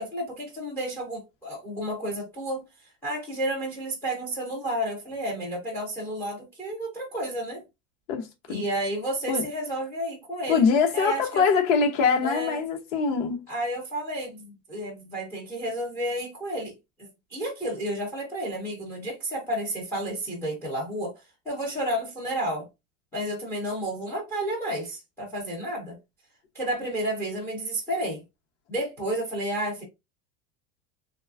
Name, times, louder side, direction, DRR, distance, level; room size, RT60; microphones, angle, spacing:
voice 1, 0.0-2.6 3.0-7.6 8.5-10.6 10.9-11.4 12.2-12.6 13.5-16.7 17.3-21.1 21.5-22.7 23.1-26.0 26.5-28.2 28.7-29.8, right 1 dB, 5° left, 0.3 m, -31 dB
voice 2, 8.1-8.6 9.3-9.5 10.5-13.4, left 5 dB, 60° left, 0.9 m, -23 dB
3.2 x 2.3 x 2.4 m
cardioid pair, 175°, 40 cm